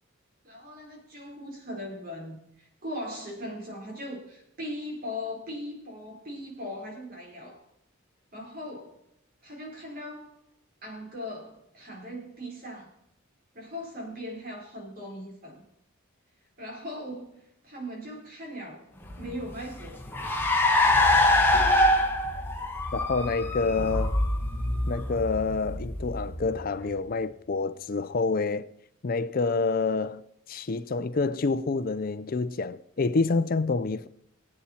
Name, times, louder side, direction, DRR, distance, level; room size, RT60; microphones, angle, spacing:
voice 1, 0.4-7.6 8.3-9.0 9.4-10.3 10.8-12.9 13.5-15.6 16.6-17.4 17.6-18.9 19.2-20.0, left 1 dB, 45° right, 4.1 m, -39 dB
Car, 19.1-26.8, left 1 dB, 10° left, 1.4 m, -25 dB
voice 2, 22.9-24.1 24.9-28.7 29.0-30.2 30.5-34.1, left 4 dB, 45° left, 0.5 m, -27 dB
20.5 x 8.7 x 4.3 m
head